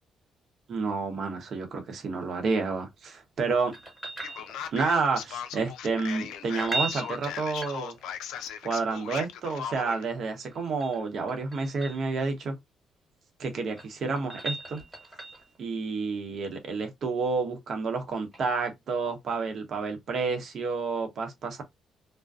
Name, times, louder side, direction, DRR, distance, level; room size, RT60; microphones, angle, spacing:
voice 1, 0.7-3.7 4.7-8.0 8.6-12.5 13.4-14.8 15.6-21.6, right 4 dB, 60° right, 0.8 m, -30 dB
sound 1, 3.7-5.0 6.4-8.3 10.4-12.1 13.5-15.6 18.3-18.4, right 2 dB, 5° right, 1.4 m, -37 dB
Male speech man speaking, 4.2-10.0, left 9 dB, 90° left, 0.3 m, -38 dB
2.5 x 2.1 x 2.3 m
cardioid pair, 90°, 0 cm